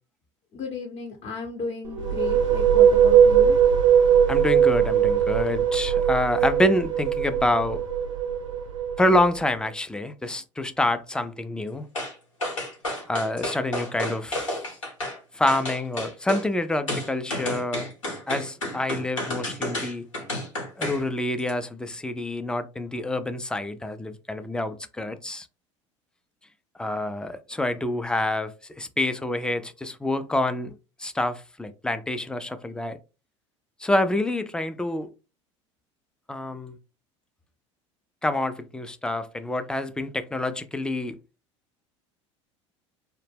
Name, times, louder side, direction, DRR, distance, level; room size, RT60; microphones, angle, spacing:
voice 1, 0.5-3.6, left 4 dB, 40° left, 0.7 m, -34 dB
sound 1, 1.8-9.5, right 8 dB, 85° right, 0.5 m, -20 dB
voice 2, 4.3-7.8 9.0-11.9 13.1-14.6 15.3-17.9 18.3-20.1 20.8-25.5 26.8-33.0 33.8-35.1 36.3-36.8 38.2-41.2, left 1 dB, 5° left, 0.3 m, -27 dB
sound 2, 11.9-12.1 12.4-15.2 15.5-16.4 16.9-21.0 21.4-21.5, left 1 dB, 90° left, 1.1 m, -31 dB
2.1 x 2.0 x 3.3 m
hypercardioid pair, 75°, 16 cm